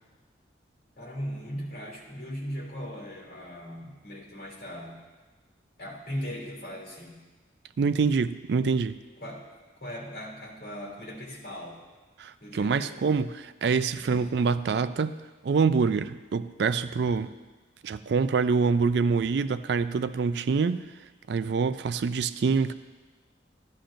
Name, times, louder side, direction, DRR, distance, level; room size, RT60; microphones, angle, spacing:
voice 1, 1.0-5.0 5.8-7.3 9.2-9.5 9.8-11.8 12.4-13.1 14.1-14.4, equal, 55° left, -3 dB, 2.8 m, -38 dB
voice 2, 7.8-9.0 12.2-15.2 15.4-17.3 17.8-20.8 21.3-22.7, right 5 dB, 65° right, 13 dB, 0.4 m, -25 dB
14.0 x 11.5 x 2.6 m, 1.3 s
head